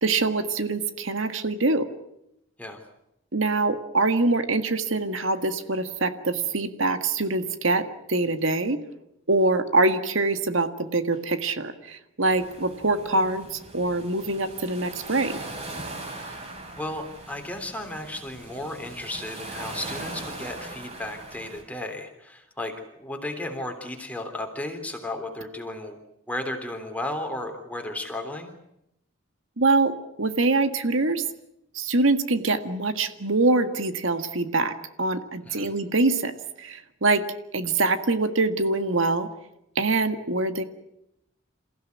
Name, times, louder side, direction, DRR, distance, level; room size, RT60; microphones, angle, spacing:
voice 1, 0.0-1.9 3.3-8.8 9.3-15.4 29.6-29.9 30.2-31.2 31.7-36.3 36.6-37.2 37.5-39.3 39.8-40.6, right 3 dB, 80° right, 9 dB, 1.7 m, -24 dB
sound 1, 12.3-21.6, right 2 dB, 35° right, 6.0 m, -40 dB
voice 2, 16.7-26.0 26.3-28.5 35.4-35.7, left 1 dB, 5° left, 4 dB, 3.3 m, -34 dB
28.5 x 15.5 x 9.5 m, 0.84 s
head